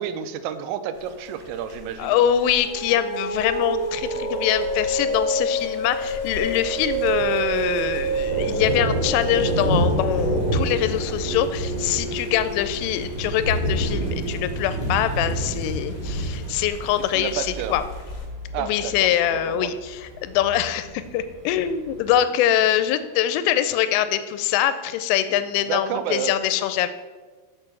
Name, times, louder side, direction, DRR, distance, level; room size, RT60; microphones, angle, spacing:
voice 1, 0.0-2.2 17.1-17.8 18.5-19.1 19.5-19.7 25.6-26.3, right 9 dB, 85° right, 11 dB, 3.2 m, -30 dB
sound 1, 0.9-18.3, left 3 dB, 60° left, 1.9 m, -40 dB
voice 2, 2.0-17.8 18.6-26.9, left 11 dB, 85° left, 12 dB, 3.0 m, -23 dB
sound 2, 2.5-15.3, right 2 dB, 55° right, 2.7 m, -29 dB
Thunder, 6.6-22.2, right 1 dB, 40° right, 3.0 m, -29 dB
6.8 x 6.7 x 7.1 m, 1.3 s
omnidirectional pair, 5.8 m